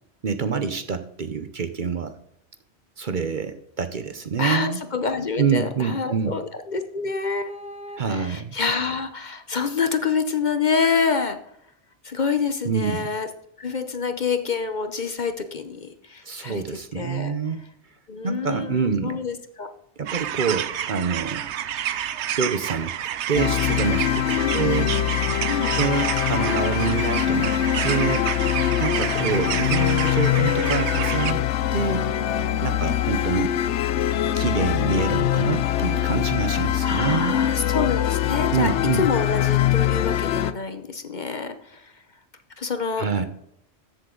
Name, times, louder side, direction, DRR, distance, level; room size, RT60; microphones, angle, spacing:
voice 1, 0.2-2.2 3.0-4.8 5.4-6.4 8.0-8.6 12.6-13.1 16.2-17.7 18.2-19.2 20.0-21.5 22.4-22.9 23.3-25.0 25.8-28.3 28.8-31.4 31.7-32.1 32.6-33.5 34.3-37.4 38.5-39.0 43.0-43.3, right 6 dB, 50° right, 10 dB, 0.8 m, -26 dB
voice 2, 4.4-11.4 12.0-13.3 13.6-16.6 16.9-17.3 18.1-19.7 24.4-24.6 25.5-25.7 36.8-41.9 42.6-43.3, left 5 dB, 45° left, 9 dB, 0.9 m, -27 dB
sound 1, 20.1-31.3, right 10 dB, 75° right, 0.9 m, -29 dB
sound 2, 23.3-40.5, left 11 dB, 75° left, 0.9 m, -23 dB
14.0 x 7.6 x 3.8 m, 0.75 s
omnidirectional pair, 1.2 m